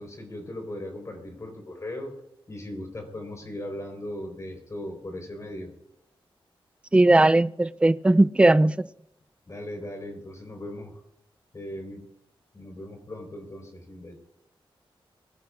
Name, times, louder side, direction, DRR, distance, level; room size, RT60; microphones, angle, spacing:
voice 1, 0.0-2.1 2.5-5.7 9.5-11.0 11.5-12.1 12.5-14.2, left 1 dB, 35° left, 3.9 m, -38 dB
voice 2, 6.9-8.8, right 2 dB, 10° right, 0.4 m, -18 dB
21.5 x 15.0 x 2.4 m
wide cardioid pair, 135°, 9 cm